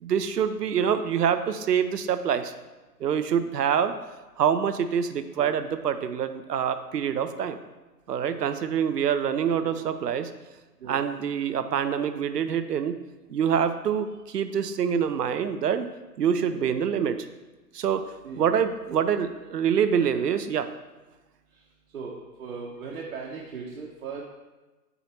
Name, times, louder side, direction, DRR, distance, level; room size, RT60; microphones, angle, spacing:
voice 1, 0.0-2.5 3.0-3.9 4.4-7.6 8.1-10.3 10.9-13.0 13.3-15.9 16.2-17.3 17.7-18.0 18.3-20.7, right 8 dB, 70° right, 10 dB, 0.7 m, -25 dB
voice 2, 22.4-24.2, right 5 dB, 55° right, -3 dB, 1.0 m, -38 dB
8.0 x 2.7 x 4.4 m, 1.2 s
figure-of-eight pair, 130°, 49 cm